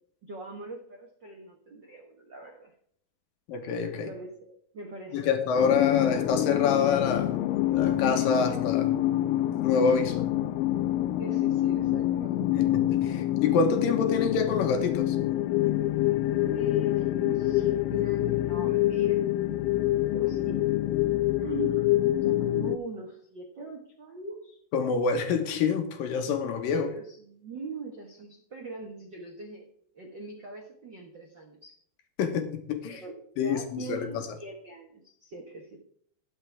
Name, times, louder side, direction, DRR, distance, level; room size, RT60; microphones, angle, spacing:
voice 1, 0.2-2.7 3.9-5.4 11.2-12.5 16.5-19.2 20.1-20.7 21.4-24.6 26.8-29.7 29.9-31.7 32.9-35.8, right 2 dB, 70° right, 1 dB, 1.0 m, -41 dB
voice 2, 3.5-4.1 5.1-7.4 7.7-8.9 9.6-10.3 12.6-15.2 24.7-26.9 32.2-33.0 33.4-34.3, left 5 dB, 70° left, 6 dB, 2.6 m, -27 dB
sound 1, 5.6-22.8, left 14 dB, 85° left, 1.9 m, -26 dB
20.0 x 6.7 x 3.5 m, 0.65 s
omnidirectional pair, 4.6 m